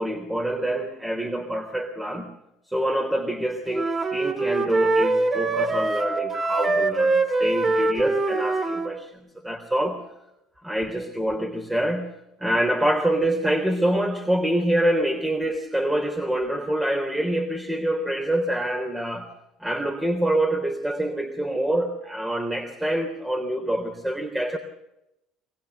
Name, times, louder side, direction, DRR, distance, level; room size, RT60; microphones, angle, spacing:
voice 1, 0.0-2.3 2.7-9.1 9.4-10.0 10.6-12.1 12.4-19.3 19.6-24.6, right 1 dB, 10° right, 4 dB, 3.6 m, -26 dB
sound 1, 3.7-8.9, right 2 dB, 25° right, 3.6 m, -23 dB
23.0 x 22.5 x 6.8 m, 0.86 s
hypercardioid pair, 75°, 0 cm